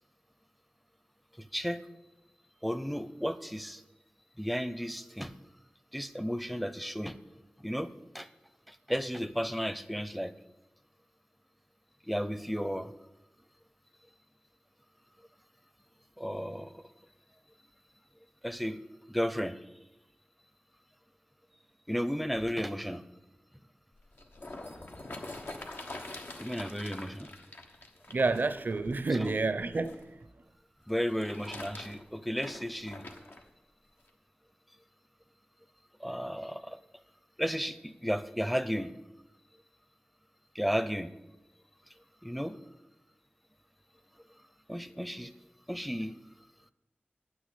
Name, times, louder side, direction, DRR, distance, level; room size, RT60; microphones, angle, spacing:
voice 1, 1.4-1.8 2.6-3.8 4.4-5.4 5.9-7.2 7.6-8.3 8.7-10.3 12.0-12.9 16.2-16.8 18.4-18.8 19.1-19.6 21.9-23.0 26.4-27.3 29.1-29.3 30.9-33.1 36.0-36.8 37.4-38.9 40.5-41.1 42.2-42.6 44.7-45.3 45.7-46.2, equal, ahead, 0.6 m, -33 dB
sound 1, 23.9-30.0 30.9-33.4 34.1-34.2, left 2 dB, 75° left, 1.2 m, -45 dB
voice 2, 28.1-30.2, right 3 dB, 60° right, 0.5 m, -29 dB
9.3 x 6.2 x 8.3 m
wide cardioid pair, 65°, 4 cm